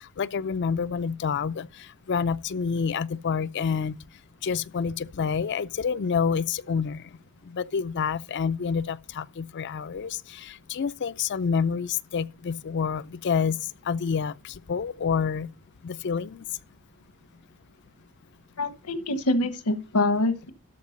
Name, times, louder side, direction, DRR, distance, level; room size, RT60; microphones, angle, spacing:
voice 1, 0.2-1.7 2.1-4.0 4.4-7.0 7.5-13.6 13.9-15.5 15.8-16.4, left 6 dB, 50° left, 0.4 m, -28 dB
voice 2, 18.6-20.5, left 2 dB, 85° left, 1.2 m, -25 dB
13.0 x 4.7 x 5.2 m
head